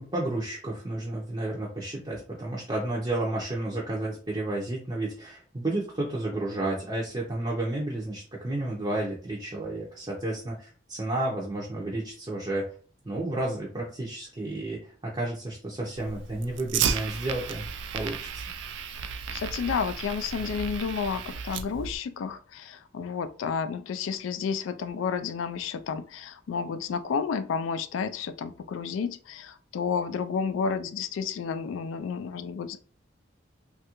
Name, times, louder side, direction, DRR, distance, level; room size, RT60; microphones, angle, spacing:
voice 1, 0.0-12.7 13.0-17.6 17.9-18.4, right 2 dB, 25° right, -4 dB, 0.5 m, -31 dB
Fire, 16.0-22.0, right 7 dB, 70° right, 0.3 m, -33 dB
voice 2, 19.3-32.8, left 6 dB, 85° left, 11 dB, 0.3 m, -31 dB
3.2 x 2.4 x 2.9 m, 0.42 s
head